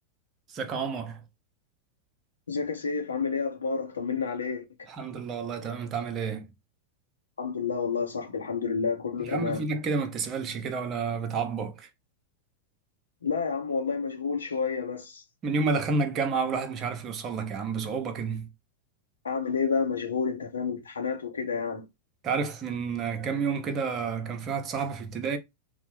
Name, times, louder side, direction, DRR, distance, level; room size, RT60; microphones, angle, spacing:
voice 1, 0.5-1.2 4.9-6.5 9.2-11.9 15.4-18.5 22.2-25.4, right 4 dB, 30° right, 0.6 m, -30 dB
voice 2, 2.5-4.6 7.4-9.7 13.2-15.2 19.2-21.9, left 5 dB, 70° left, 0.7 m, -30 dB
3.3 x 2.0 x 3.0 m
figure-of-eight pair, 90°, 0 cm